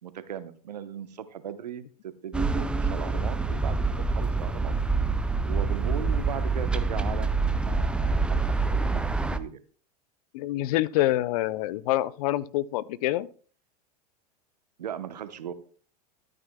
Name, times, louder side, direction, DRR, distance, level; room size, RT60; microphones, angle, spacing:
voice 1, 0.0-3.8 4.1-4.7 5.4-9.6 14.8-15.5, right 9 dB, 90° right, 12 dB, 0.9 m, -38 dB
sound 1, 2.3-9.4, right 3 dB, 5° right, 0.5 m, -26 dB
voice 2, 10.3-13.3, left 15 dB, 65° left, 20 dB, 0.5 m, -26 dB
13.0 x 9.1 x 2.2 m, 0.43 s
hypercardioid pair, 105°, 20 cm